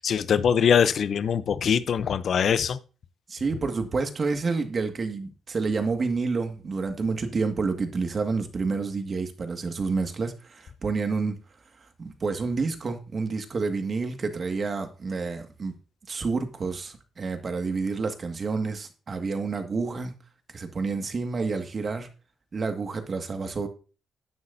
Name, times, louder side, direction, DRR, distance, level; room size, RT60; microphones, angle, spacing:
voice 1, 0.0-2.8, left 7 dB, 65° left, 0.7 m, -22 dB
voice 2, 3.3-11.4 12.0-15.8 16.1-20.1 20.5-22.1 22.5-23.7, right 4 dB, 45° right, 2.0 m, -29 dB
13.0 x 9.6 x 2.8 m
supercardioid pair, 55°, 0 cm